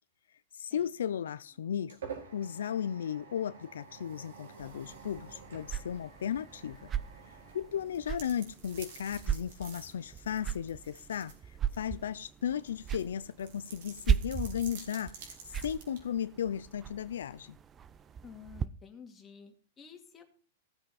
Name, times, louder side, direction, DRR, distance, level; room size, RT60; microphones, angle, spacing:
voice 1, 0.6-2.0 2.3-6.8 7.5-11.3 11.7-15.4 15.6-17.6, left 9 dB, 85° left, 0.5 m, -35 dB
sound 1, 1.4-8.6, right 6 dB, 85° right, 5.1 m, -49 dB
sound 2, 4.6-18.7, right 8 dB, 20° right, 0.5 m, -38 dB
sound 3, 7.8-11.4 11.7-11.8 12.7-16.0, right 6 dB, 65° right, 4.2 m, -50 dB
voice 2, 18.2-20.2, left 7 dB, 20° left, 2.4 m, -51 dB
16.5 x 7.7 x 4.3 m
hypercardioid pair, 140°, 0 cm